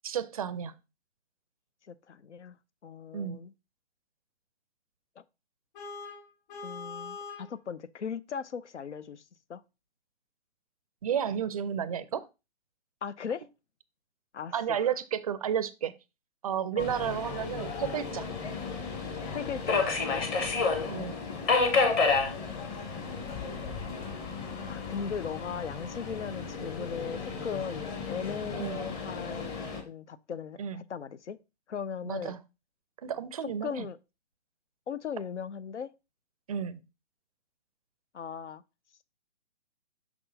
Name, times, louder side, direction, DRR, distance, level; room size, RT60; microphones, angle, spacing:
voice 1, 0.0-0.7 3.1-3.4 11.0-12.2 14.5-15.9 16.4-18.3 20.9-21.2 28.6-28.8 30.6-30.8 32.1-32.4 33.0-33.9 36.5-36.8, right 8 dB, 35° right, 0.4 m, -32 dB
voice 2, 1.9-2.6 2.8-3.5 5.2-5.3 6.6-9.2 9.5-9.6 13.0-13.4 14.3-14.9 16.8-16.9 19.3-20.3 22.5-23.0 24.6-29.5 29.8-31.4 31.7-32.4 33.6-34.0 34.9-35.9 38.1-38.6, left 7 dB, 90° left, 0.6 m, -38 dB
Vehicle horn car horn honking, 5.7-7.5, left 4 dB, 45° left, 3.2 m, -42 dB
Subway metro underground, 16.8-29.8, left 4 dB, 15° left, 0.7 m, -32 dB
6.0 x 5.9 x 2.7 m
hypercardioid pair, 140°, 34 cm